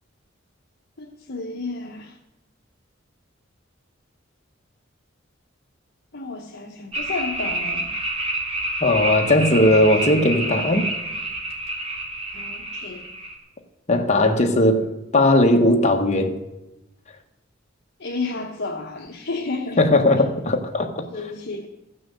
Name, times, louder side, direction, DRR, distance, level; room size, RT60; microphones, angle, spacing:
voice 1, 1.0-2.2 6.1-7.9 12.3-13.1 18.0-19.8 21.1-21.7, left 3 dB, 60° left, 0 dB, 1.0 m, -31 dB
sound 1, 6.9-13.4, right 1 dB, 30° right, 2.4 m, -28 dB
voice 2, 8.8-10.9 13.9-16.4 19.8-21.0, left 1 dB, 35° left, 4 dB, 1.3 m, -18 dB
14.5 x 6.1 x 7.8 m, 0.96 s
head